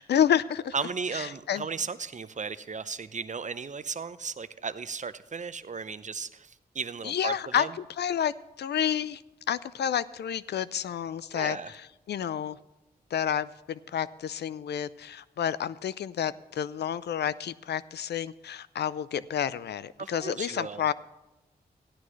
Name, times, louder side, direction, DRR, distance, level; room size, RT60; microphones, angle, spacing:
voice 1, 0.0-0.7 1.1-1.7 7.0-7.7 8.0-9.2 9.5-11.6 12.1-12.6 13.1-20.9, left 9 dB, 80° left, 17 dB, 0.4 m, -29 dB
voice 2, 0.7-7.7 11.3-11.7 20.0-20.9, right 5 dB, 45° right, 14 dB, 0.6 m, -35 dB
15.5 x 11.0 x 3.2 m, 0.98 s
cardioid pair, 45°, 17 cm